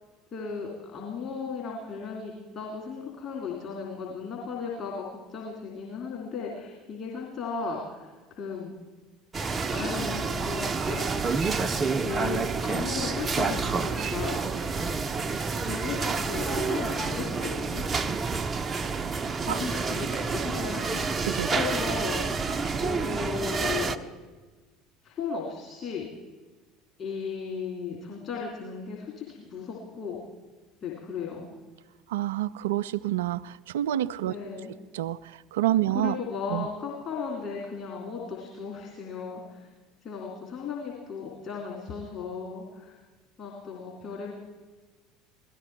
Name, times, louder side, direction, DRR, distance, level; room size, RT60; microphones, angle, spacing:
voice 1, 0.3-8.7 9.7-11.2 12.0-14.7 15.5-17.8 19.4-22.2 22.8-24.1 25.0-26.1 27.0-30.2 30.8-31.5 34.2-34.7 35.9-39.7 40.0-43.0 43.4-44.3, left 5 dB, 40° left, -2 dB, 2.9 m, -36 dB
sound 1, 9.3-24.0, right 4 dB, 25° right, 0.6 m, -29 dB
voice 2, 32.1-34.3 34.9-36.2 36.5-36.7, right 13 dB, 65° right, 17 dB, 0.3 m, -28 dB
17.0 x 13.5 x 4.7 m, 1.3 s
figure-of-eight pair, 65°, 0 cm